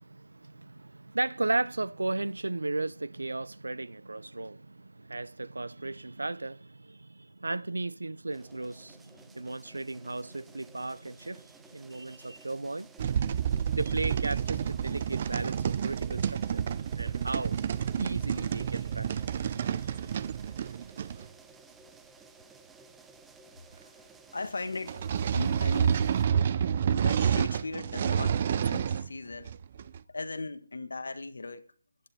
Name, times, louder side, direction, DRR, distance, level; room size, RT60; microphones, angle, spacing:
voice 1, 0.0-12.9 13.7-16.6 17.0-17.6 18.0-19.6, right 2 dB, 80° right, 0.7 m, -35 dB
sound 1, 8.3-26.3, right 4 dB, 5° right, 1.0 m, -55 dB
sound 2, 13.0-21.3 24.9-29.1 29.4-30.0, right 8 dB, 35° right, 0.6 m, -29 dB
voice 2, 24.3-29.5 30.1-31.7, left 3 dB, 70° left, 1.5 m, -39 dB
16.5 x 11.0 x 4.3 m
figure-of-eight pair, 155°, 0 cm